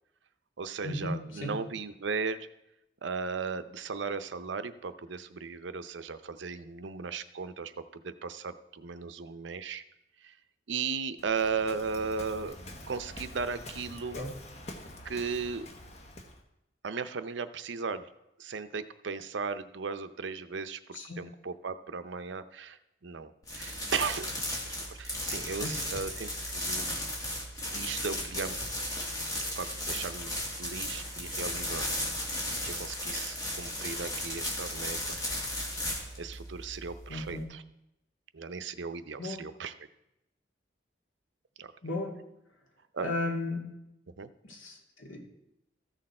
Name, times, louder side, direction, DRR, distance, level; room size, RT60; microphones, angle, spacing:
voice 1, 0.6-2.5 3.0-9.8 10.2-10.3 10.7-12.6 12.9-14.2 15.0-15.7 16.8-18.1 18.4-24.3 24.9-26.9 27.7-28.6 29.5-30.3 30.6-31.9 32.6-35.2 36.2-37.6 38.3-39.7 41.6-41.7 42.9-43.1 44.2-44.3, right 5 dB, 70° right, 12 dB, 0.6 m, -36 dB
Waves surf, 11.2-16.4, left 1 dB, 35° left, 1.1 m, -46 dB
sound 1, 23.4-37.4, left 1 dB, 20° left, 1.8 m, -35 dB
voice 2, 37.1-37.4 39.2-39.5 41.8-42.2 43.0-43.6 44.4-45.2, left 2 dB, 85° left, 1 dB, 2.2 m, -35 dB
14.0 x 6.5 x 4.3 m, 0.87 s
head